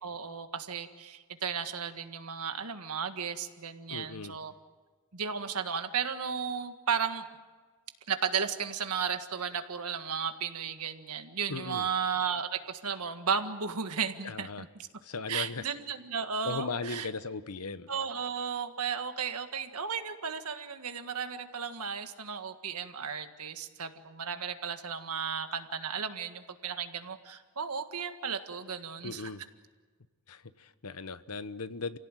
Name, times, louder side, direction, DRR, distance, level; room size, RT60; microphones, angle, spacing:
voice 1, 0.0-4.5 5.1-7.3 8.1-14.7 15.3-17.1 17.9-29.3, right 6 dB, 90° right, 8 dB, 1.7 m, -34 dB
voice 2, 3.9-4.3 11.5-11.9 14.2-14.6 15.0-15.6 16.4-17.9 29.0-29.4 30.3-32.0, left 4 dB, 85° left, 13 dB, 1.0 m, -37 dB
29.0 x 17.0 x 9.1 m, 1.4 s
head